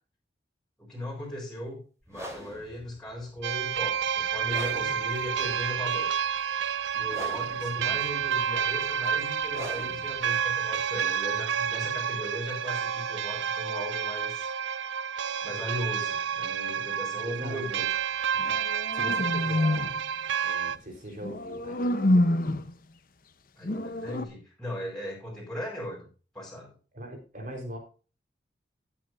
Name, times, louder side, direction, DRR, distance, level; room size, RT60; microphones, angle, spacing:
voice 1, 0.8-1.8 2.1-6.1 6.9-14.5 15.4-17.9 23.6-26.1 26.3-26.7, left 1 dB, 5° left, -5 dB, 4.6 m, -37 dB
sound 1, 2.0-11.9, equal, 15° right, 3.3 m, -45 dB
sound 2, 3.4-20.8, right 8 dB, 90° right, 0.6 m, -30 dB
voice 2, 7.6-7.9 17.2-17.6 18.3-18.6 18.9-19.9 20.4-22.5 26.9-27.8, equal, 45° right, 3 dB, 4.1 m, -41 dB
sound 3, 18.4-20.0 21.2-22.7 23.6-24.3, left 1 dB, 50° left, 0.9 m, -27 dB
16.0 x 8.5 x 2.6 m, 0.36 s
head